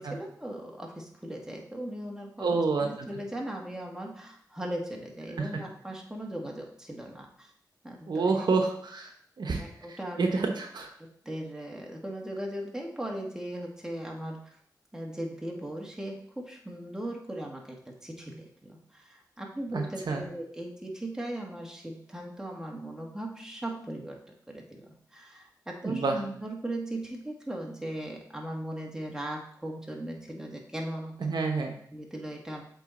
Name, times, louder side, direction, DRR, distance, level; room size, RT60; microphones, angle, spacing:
voice 1, 0.0-7.5 7.8-8.5 9.6-10.2 11.0-14.5 14.9-24.2 24.5-31.2 31.9-32.6, right 1 dB, 10° right, 0 dB, 1.8 m, -38 dB
voice 2, 2.4-3.1 5.4-5.6 8.1-9.1 9.4-9.6 9.9-10.9 19.7-20.2 25.8-26.2 31.2-31.7, right 4 dB, 75° right, 3 dB, 0.9 m, -28 dB
7.2 x 3.9 x 4.1 m, 0.63 s
cardioid pair, 45°, 7 cm